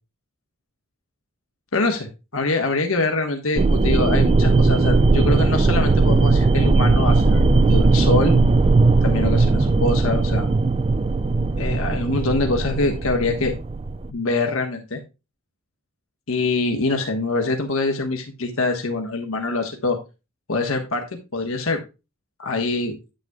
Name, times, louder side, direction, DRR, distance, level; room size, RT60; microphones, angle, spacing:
voice 1, 1.7-2.1 2.3-7.4 7.7-8.4 9.0-10.5 11.6-13.6 14.1-15.0 16.3-20.0 20.5-21.0 21.3-21.8 22.4-23.0, left 3 dB, 75° left, 3 dB, 1.2 m, -24 dB
sound 1, 3.6-14.1, right 3 dB, 25° right, 0.3 m, -18 dB
9.1 x 9.0 x 2.3 m, 0.28 s
head